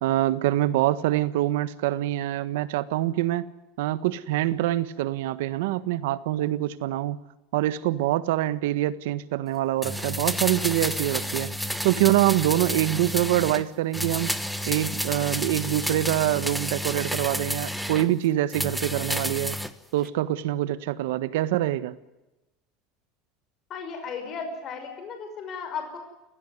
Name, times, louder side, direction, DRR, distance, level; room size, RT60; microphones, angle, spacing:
voice 1, 0.0-3.5 3.8-7.2 7.5-11.5 11.8-14.3 14.7-19.6 19.9-21.9, right 14 dB, 90° right, 14 dB, 1.5 m, -25 dB
sound 1, 9.8-13.6 13.9-18.1 18.5-19.7 20.0-20.1, equal, ahead, 1.2 m, -30 dB
voice 2, 23.7-26.0, left 5 dB, 35° left, 5 dB, 5.6 m, -35 dB
30.0 x 16.5 x 9.6 m, 1.0 s
cardioid pair, 165°, 0 cm